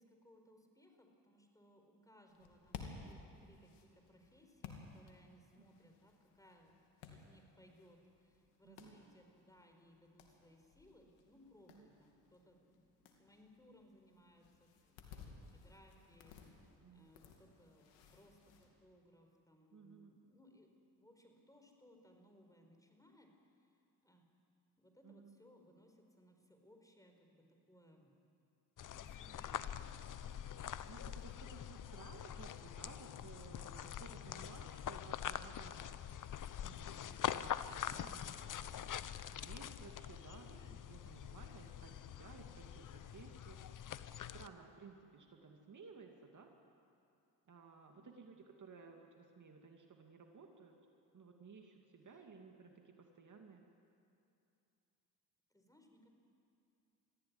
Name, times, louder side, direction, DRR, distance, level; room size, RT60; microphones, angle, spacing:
voice 1, 0.0-6.8 7.1-16.6 16.9-23.3 23.6-23.8 24.0-24.3 24.8-28.1 28.9-29.9 47.9-48.2 52.1-52.3 55.5-56.1, equal, 10° left, 3 dB, 4.8 m, -65 dB
sound 1, 2.3-18.7, left 5 dB, 90° left, 2.5 m, -57 dB
voice 2, 16.8-17.1 19.7-20.1 25.0-25.4 30.9-35.9 36.6-39.0 39.3-43.9 44.3-46.5 47.5-50.8 51.1-53.6, right 4 dB, 45° right, 3 dB, 2.4 m, -57 dB
sound 2, 28.8-44.5, left 10 dB, 45° left, 0.9 m, -45 dB
22.5 x 15.0 x 9.8 m, 2.7 s
supercardioid pair, 65°, 43 cm